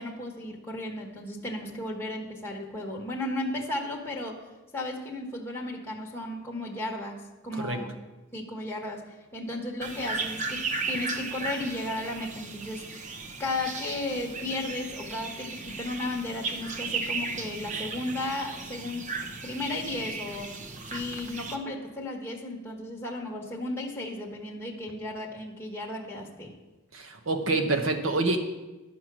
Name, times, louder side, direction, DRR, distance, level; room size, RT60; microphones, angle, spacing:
voice 1, 0.0-4.4 4.7-7.9 8.3-12.9 13.4-19.1 19.4-20.5 20.9-26.5, left 2 dB, 10° left, -2 dB, 1.3 m, -34 dB
sound 1, 9.8-21.6, right 4 dB, 35° right, 0.8 m, -36 dB
voice 2, 26.9-28.4, right 2 dB, 70° right, 5 dB, 1.2 m, -27 dB
11.5 x 5.8 x 6.1 m, 1.1 s
head